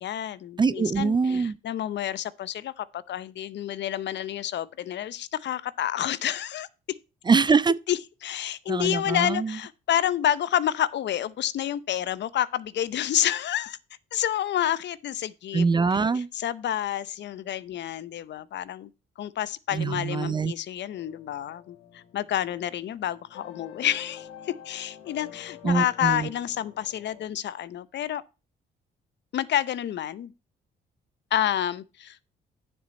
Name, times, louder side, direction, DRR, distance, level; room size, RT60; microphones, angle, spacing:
voice 1, 0.0-6.7 7.9-13.8 14.1-15.7 16.1-18.9 19.2-28.2 29.3-30.3 31.3-32.2, left 11 dB, 65° left, 0.7 m, -29 dB
voice 2, 0.6-1.6 7.3-7.7 8.7-9.6 15.5-16.3 19.7-20.5 25.6-26.3, right 5 dB, 25° right, 0.4 m, -23 dB
sound 1, 20.9-27.3, left 10 dB, 90° left, 1.7 m, -48 dB
9.5 x 7.1 x 4.1 m
cardioid pair, 90°, 20 cm